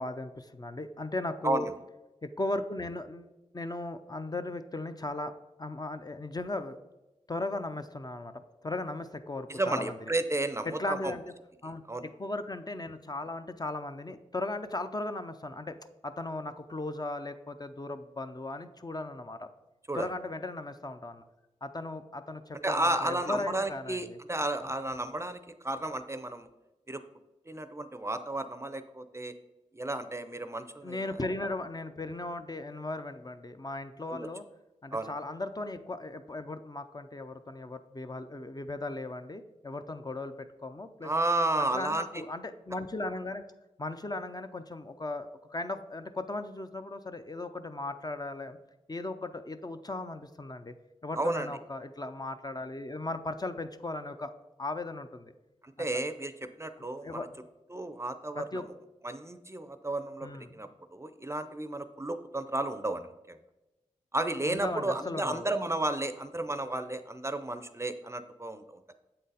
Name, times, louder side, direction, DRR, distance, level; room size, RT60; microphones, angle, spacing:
voice 1, 0.0-1.7 2.2-5.3 5.6-6.8 7.3-10.1 10.7-11.2 11.6-15.7 16.0-19.5 19.9-21.2 21.6-24.2 30.8-34.4 34.8-41.1 41.7-43.4 43.8-48.6 48.9-50.7 51.0-54.3 54.6-55.3 55.9-56.0 57.0-57.3 58.4-58.6 60.2-60.5 64.4-65.5, left 2 dB, 30° left, 8 dB, 0.5 m, -37 dB
voice 2, 9.5-11.1 11.9-12.1 19.9-20.1 22.6-26.5 26.9-27.0 27.5-29.3 29.7-31.0 34.1-34.3 34.9-35.1 41.0-42.2 51.1-51.5 55.6-56.3 56.6-57.3 57.7-58.6 59.0-63.4 64.1-68.8, right 2 dB, 20° right, 10 dB, 0.5 m, -32 dB
7.5 x 3.9 x 4.0 m, 1.0 s
cardioid pair, 40°, 13 cm